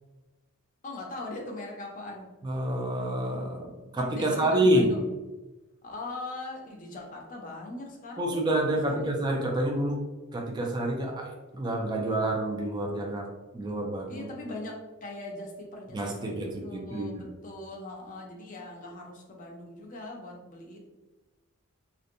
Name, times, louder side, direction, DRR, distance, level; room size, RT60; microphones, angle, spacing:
voice 1, 0.8-2.3 4.1-5.0 5.8-8.4 8.8-9.1 14.1-20.8, left 2 dB, 35° left, 0 dB, 0.5 m, -40 dB
voice 2, 2.4-4.9 8.2-10.0 10.3-13.3 13.5-14.3 15.9-17.3, right 1 dB, 20° right, 0 dB, 0.3 m, -28 dB
2.6 x 2.1 x 2.5 m, 1.1 s
head